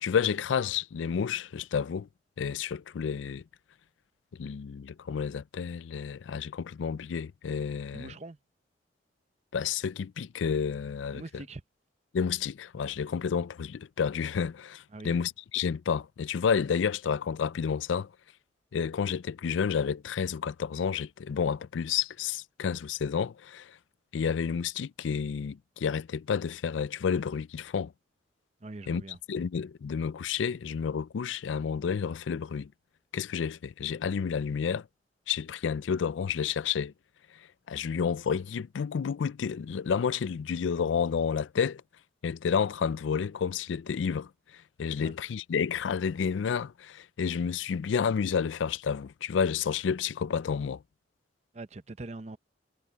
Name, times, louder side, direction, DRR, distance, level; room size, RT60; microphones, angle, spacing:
voice 1, 0.0-2.1 2.4-3.4 4.4-8.1 9.5-11.4 12.1-18.1 18.7-23.7 24.1-27.9 28.9-29.0 29.3-32.7 33.1-34.8 35.3-36.9 37.7-41.8 42.2-44.3 44.8-50.8, left 6 dB, 85° left, 0.4 m, -30 dB
voice 2, 7.9-8.4 11.1-11.6 14.9-15.2 28.6-29.2 45.0-45.1 51.5-52.4, right 2 dB, 35° right, 0.6 m, -42 dB
head